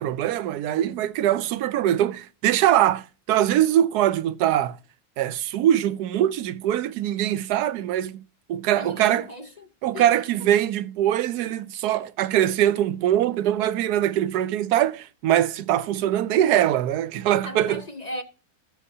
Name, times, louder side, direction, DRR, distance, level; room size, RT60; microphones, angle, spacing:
voice 1, 0.0-4.8 5.2-9.3 9.8-17.8, right 11 dB, 85° right, 1.2 m, -22 dB
voice 2, 8.8-9.7 9.9-10.1 17.4-18.2, left 1 dB, 35° left, 0.7 m, -37 dB
19.5 x 6.9 x 2.7 m
omnidirectional pair, 1.6 m